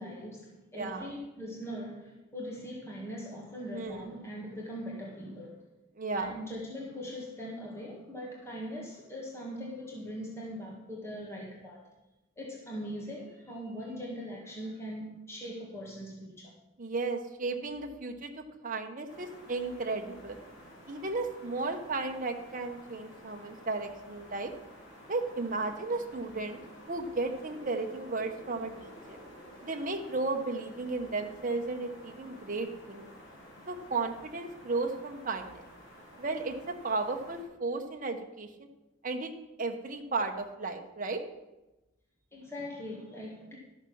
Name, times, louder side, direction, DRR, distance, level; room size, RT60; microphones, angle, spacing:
voice 1, 0.0-5.6 6.1-11.9 12.4-16.5 33.1-33.2 42.3-43.6, equal, 15° left, -4 dB, 1.8 m, -41 dB
voice 2, 0.7-1.1 3.7-4.1 6.0-6.3 16.8-20.4 20.9-24.5 25.1-26.6 26.9-29.2 29.6-33.1 33.7-35.6 36.2-38.5 39.0-39.3 39.6-41.2, right 3 dB, 40° right, 4 dB, 1.1 m, -34 dB
sound 1, 19.1-37.4, equal, 70° left, 3.5 m, -52 dB
12.5 x 6.6 x 6.3 m, 1.0 s
head